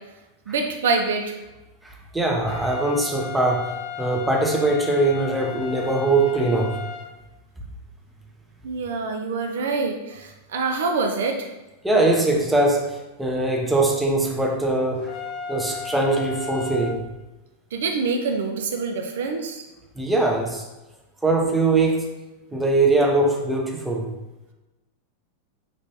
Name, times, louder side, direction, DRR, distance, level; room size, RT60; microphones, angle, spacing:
voice 1, 0.5-1.4 8.6-11.5 17.7-19.6, right 4 dB, 60° right, 3 dB, 0.4 m, -25 dB
voice 2, 1.8-3.7 4.0-6.8 11.8-15.1 15.5-17.0 20.0-20.6 21.2-22.1 22.5-24.1, right 2 dB, 5° right, 0 dB, 0.6 m, -21 dB
sound 1, 2.5-7.1 15.1-17.0, left 6 dB, 40° left, 0.3 m, -34 dB
4.4 x 3.0 x 2.8 m, 1.1 s
figure-of-eight pair, 90°, 0 cm